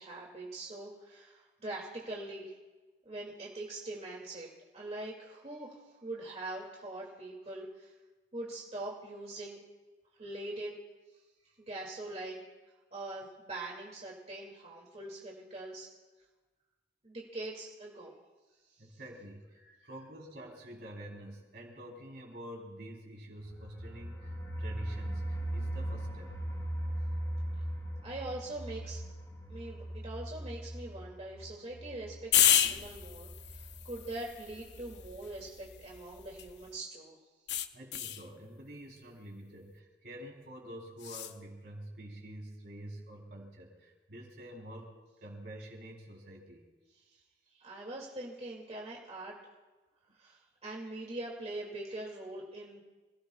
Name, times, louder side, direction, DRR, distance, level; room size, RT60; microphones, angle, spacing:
voice 1, 0.0-2.6 3.0-4.5 4.7-7.9 8.3-9.6 10.2-10.7 11.6-12.5 12.9-15.9 17.0-18.1 18.9-19.0 19.6-19.9 27.6-27.7 28.0-29.0 29.5-37.2 47.1-47.2 47.5-49.3 50.2-52.8, right 2 dB, 40° right, -3 dB, 2.6 m, -43 dB
voice 2, 18.8-26.4 37.7-46.7, right 1 dB, 65° right, -1 dB, 3.8 m, -47 dB
sound 1, 23.4-34.1 34.4-34.5 34.9-35.0, right 1 dB, 20° left, 6.6 m, -39 dB
sound 2, 32.3-36.7 37.5-38.3 41.0-41.4, left 10 dB, 75° left, 0.7 m, -31 dB
28.0 x 17.5 x 2.4 m, 1.2 s
head